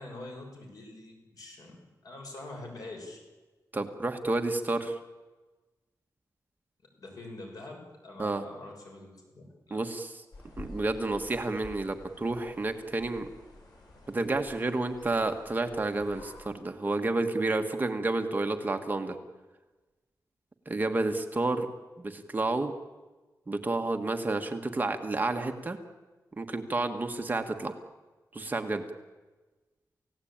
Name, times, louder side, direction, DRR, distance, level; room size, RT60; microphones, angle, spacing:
voice 1, 0.0-3.2 7.0-9.8, left 2 dB, 65° left, 1 dB, 6.4 m, -45 dB
voice 2, 3.7-5.0 8.2-8.4 9.7-10.2 10.6-13.3 14.1-19.2 20.6-21.7 22.0-22.7 23.5-25.8 26.4-27.7 28.3-28.8, right 2 dB, 25° right, 5 dB, 1.4 m, -30 dB
sound 1, 10.3-16.4, left 1 dB, 85° left, 7.8 m, -50 dB
28.5 x 16.5 x 8.8 m, 1.2 s
wide cardioid pair, 170°, 7 cm